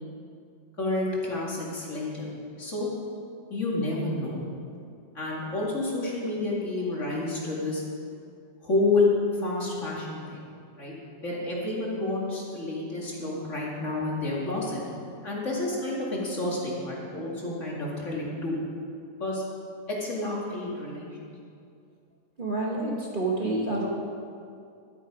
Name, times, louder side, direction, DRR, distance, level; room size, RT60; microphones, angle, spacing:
voice 1, 0.8-2.3 2.6-2.9 3.5-4.4 5.1-7.8 8.6-10.4 10.8-10.9 11.2-14.8 15.2-18.6 19.2-19.4 19.9-21.3, left 2 dB, 50° left, -4 dB, 2.6 m, -29 dB
voice 2, 22.4-23.9, right 2 dB, 35° right, -3 dB, 1.4 m, -28 dB
12.0 x 11.5 x 4.9 m, 2.4 s
omnidirectional pair, 1.7 m